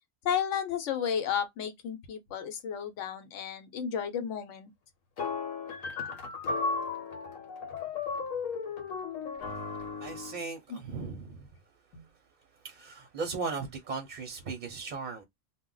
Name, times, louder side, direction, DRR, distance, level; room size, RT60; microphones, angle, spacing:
voice 1, 0.2-4.7 10.7-10.8 11.9-12.0, left 8 dB, 70° left, 1.0 m, -33 dB
sound 1, 5.2-10.4, left 4 dB, 90° left, 1.1 m, -35 dB
voice 2, 10.0-11.5 12.6-15.2, right 4 dB, 45° right, 0.6 m, -37 dB
2.3 x 2.1 x 3.7 m
omnidirectional pair, 1.4 m